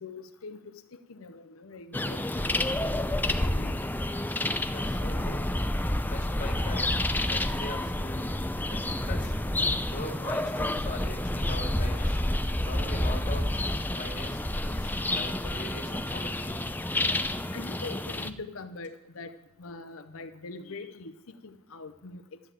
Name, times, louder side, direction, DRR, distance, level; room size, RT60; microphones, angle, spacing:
voice 1, 0.0-2.2 2.8-3.8 17.5-22.2, left 3 dB, 90° left, 9 dB, 0.7 m, -43 dB
sound 1, 1.9-18.3, left 1 dB, 10° left, 0.6 m, -29 dB
voice 2, 4.7-5.6 6.1-7.0 7.3-8.3 8.7-9.4 9.8-12.2 12.6-13.6 14.0-16.7, left 1 dB, 40° left, 3 dB, 2.5 m, -41 dB
12.0 x 10.5 x 8.3 m, 0.93 s
head